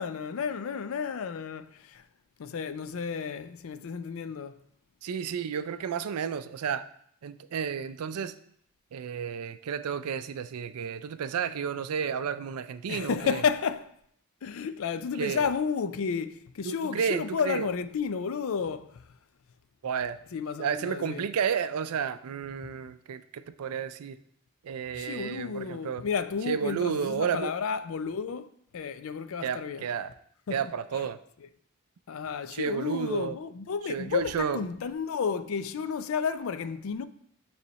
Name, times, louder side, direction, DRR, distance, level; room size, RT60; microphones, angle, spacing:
voice 1, 0.0-2.0 2.4-4.6 12.9-13.9 14.4-19.0 20.3-21.3 22.6-22.7 24.9-28.5 28.7-29.9 30.5-30.6 30.9-31.1 32.1-37.1, left 6 dB, 65° left, 0.4 m, -32 dB
voice 2, 5.0-6.9 7.2-8.3 8.9-13.4 15.2-15.5 16.6-17.7 19.8-20.2 20.6-24.2 24.6-26.0 26.5-27.5 29.4-30.1 30.5-31.2 32.5-33.4 33.9-34.6, right 7 dB, 85° right, 0.4 m, -32 dB
8.3 x 3.2 x 4.0 m
head